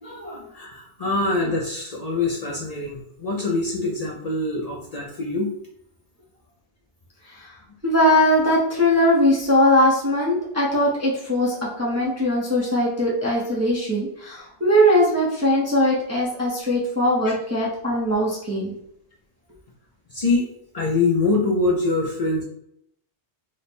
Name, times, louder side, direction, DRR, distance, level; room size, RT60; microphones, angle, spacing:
voice 1, 0.0-5.5 20.1-20.5 20.7-22.4, left 3 dB, 45° left, -2 dB, 0.5 m, -24 dB
voice 2, 7.8-18.7, equal, 20° right, -5 dB, 0.6 m, -20 dB
3.2 x 2.1 x 4.2 m, 0.73 s
omnidirectional pair, 1.1 m